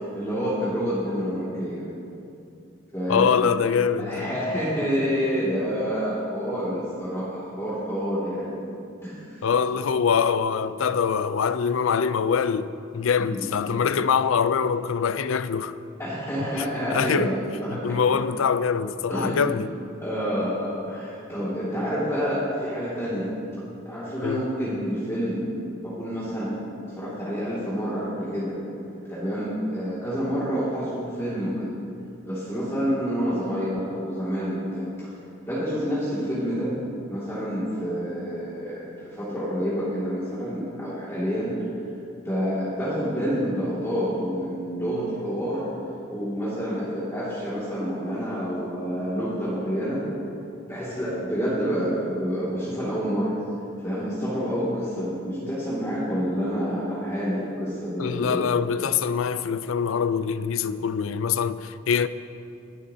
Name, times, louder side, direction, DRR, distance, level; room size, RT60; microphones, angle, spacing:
voice 1, 0.0-1.8 2.9-3.6 4.0-8.5 9.0-9.4 13.2-13.4 16.0-18.2 19.1-19.6 20.0-23.3 23.8-25.5 25.8-26.6 27.0-28.6 29.1-31.7 32.2-34.9 35.5-36.7 37.1-41.5 42.2-45.6 46.1-50.0 50.7-53.3 53.8-58.4, equal, 15° left, 2.3 m, -28 dB
voice 2, 3.1-4.3 9.4-15.7 16.9-17.3 17.7-19.8 24.2-24.5 58.0-62.1, left 6 dB, 85° left, 0.4 m, -24 dB
24.5 x 8.6 x 2.8 m
head